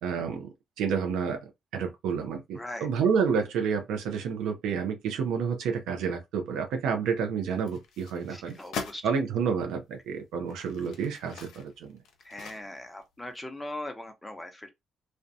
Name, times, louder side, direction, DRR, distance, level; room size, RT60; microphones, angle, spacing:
voice 1, 0.0-0.5 0.8-1.4 1.7-8.6 9.0-12.0, right 6 dB, 90° right, 0.5 m, -29 dB
voice 2, 2.6-2.9 8.3-9.0 12.2-14.7, left 1 dB, 10° left, 0.7 m, -40 dB
sound 1, 7.5-9.0 9.7-9.8 10.4-13.0 13.4-13.5, left 5 dB, 80° left, 0.6 m, -42 dB
2.5 x 2.1 x 2.6 m
cardioid pair, 90°, 0 cm